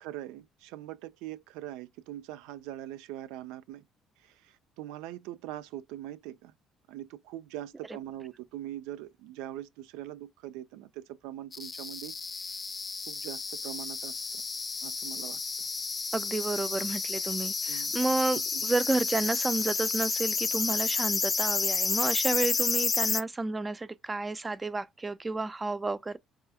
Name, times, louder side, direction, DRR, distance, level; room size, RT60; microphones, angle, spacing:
voice 1, 0.0-3.8 4.2-6.5 6.9-12.6 13.1-14.4 14.8-15.7 17.7-18.0 18.3-18.6, right 13 dB, 90° right, 0.4 m, -42 dB
sound 1, 11.5-23.2, left 4 dB, 35° left, 0.5 m, -31 dB
voice 2, 16.1-26.2, right 3 dB, 20° right, 0.4 m, -31 dB
4.7 x 2.3 x 2.7 m
supercardioid pair, 85°, 0 cm